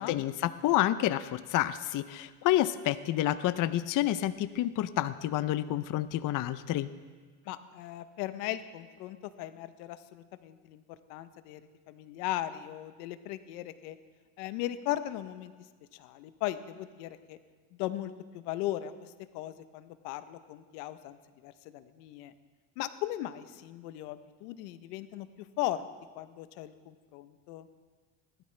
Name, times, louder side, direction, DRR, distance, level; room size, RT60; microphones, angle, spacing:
voice 1, 0.0-6.9, left 13 dB, 45° left, 13 dB, 0.6 m, -29 dB
voice 2, 7.5-10.8 11.1-14.0 14.4-15.5 15.9-17.4 17.8-21.2 21.4-22.3 22.8-25.3 25.6-25.8 26.2-27.7, left 14 dB, 85° left, 12 dB, 0.9 m, -37 dB
20.5 x 12.5 x 3.3 m, 1.4 s
supercardioid pair, 105°, 46 cm